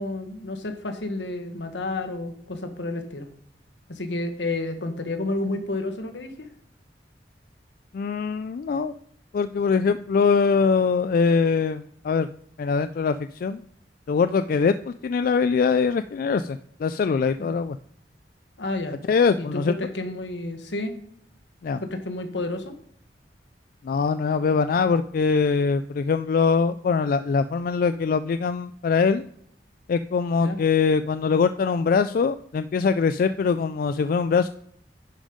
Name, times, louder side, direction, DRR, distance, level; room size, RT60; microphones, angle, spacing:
voice 1, 0.0-3.3 3.9-6.5 17.4-17.5 18.6-19.0 19.4-21.0 21.8-22.7 30.4-30.6, left 2 dB, 80° left, 7 dB, 1.4 m, -30 dB
voice 2, 7.9-8.9 9.3-12.3 12.6-13.6 14.1-17.8 19.1-19.7 21.6-21.8 23.8-29.2 29.9-34.5, left 5 dB, 50° left, 11 dB, 0.3 m, -22 dB
10.5 x 5.4 x 5.1 m, 0.66 s
head